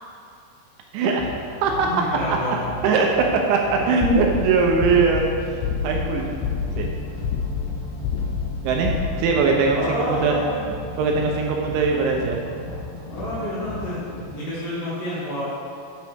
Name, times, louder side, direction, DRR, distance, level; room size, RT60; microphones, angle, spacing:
voice 1, 0.9-1.3 1.6-2.4 2.8-5.3 5.8-6.3 6.8-6.9 8.6-10.4 11.0-12.4, right 4 dB, 80° right, 1 dB, 2.9 m, -21 dB
sound 1, 1.1-14.2, left 1 dB, 70° left, 3.5 m, -36 dB
voice 2, 1.8-2.7 9.7-10.6 13.1-14.0 14.3-15.4, equal, 45° left, -12 dB, 2.5 m, -29 dB
sound 2, 4.0-4.4 4.8-5.2 5.6-6.0 6.4-6.8 7.2-7.7 8.0-8.5 8.8-9.0, left 8 dB, 90° left, 2.3 m, -26 dB
9.1 x 9.1 x 3.5 m, 2.4 s
omnidirectional pair, 5.7 m